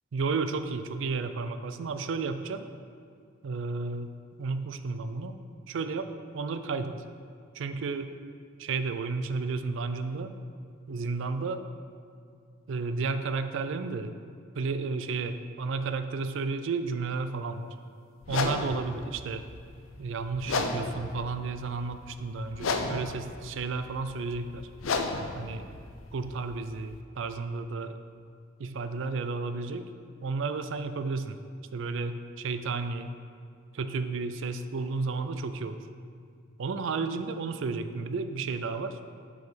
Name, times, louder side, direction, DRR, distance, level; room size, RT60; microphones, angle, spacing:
voice 1, 0.1-2.7 3.4-4.1 4.4-5.4 5.7-7.0 7.5-8.1 8.6-10.3 10.9-11.6 12.7-14.1 14.6-17.8 18.3-19.4 20.0-24.7 25.4-25.7 26.1-27.9 28.6-29.9 30.2-31.4 31.7-33.2 33.7-35.8 36.6-39.0, right 4 dB, 65° right, 10 dB, 0.4 m, -32 dB
sound 1, 18.2-27.0, left 3 dB, 80° left, 0.6 m, -34 dB
6.5 x 5.0 x 5.1 m, 2.2 s
head